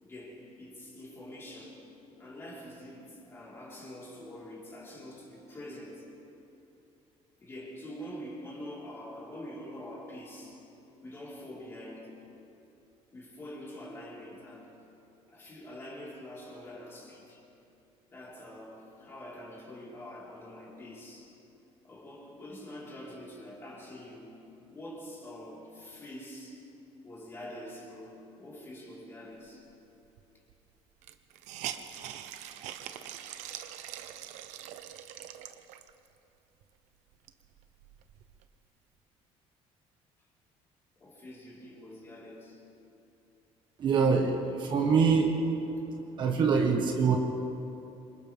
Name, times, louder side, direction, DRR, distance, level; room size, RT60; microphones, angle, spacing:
voice 1, 0.0-1.8 2.2-6.1 7.4-10.6 11.0-12.2 13.1-14.7 15.3-17.4 18.1-21.4 21.8-24.3 24.7-26.7 27.0-29.7 41.0-42.6, left 1 dB, 20° left, -5 dB, 4.5 m, -45 dB
Hiss, 30.2-30.3 30.5-30.6 31.0-36.1 36.6-36.7 37.1-38.5, right 11 dB, 85° right, 1.0 m, -43 dB
voice 2, 43.8-45.3 46.2-47.2, right 5 dB, 40° right, 1 dB, 1.6 m, -24 dB
28.0 x 25.5 x 3.6 m, 2.8 s
cardioid pair, 170°, 12 cm